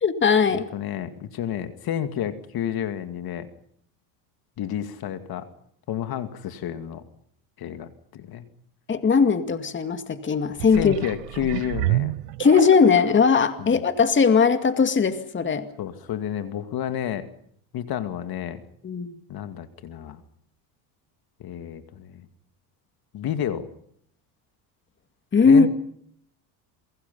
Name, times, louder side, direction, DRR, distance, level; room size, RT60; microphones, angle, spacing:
voice 1, 0.0-0.7 8.9-11.0 12.4-15.7 18.8-19.1 25.3-25.7, left 5 dB, 25° left, 9 dB, 2.2 m, -19 dB
voice 2, 0.5-3.5 4.6-5.5 5.9-7.0 7.6-8.4 10.7-12.1 13.6-13.8 15.8-17.3 17.7-18.6 19.3-20.2 21.4-22.3 23.1-23.7 25.4-25.7, left 10 dB, 50° left, 10 dB, 2.4 m, -30 dB
sound 1, 10.5-13.1 13.8-13.9, right 17 dB, 90° right, 0.9 m, -29 dB
29.0 x 23.0 x 5.5 m, 0.66 s
supercardioid pair, 105°, 47 cm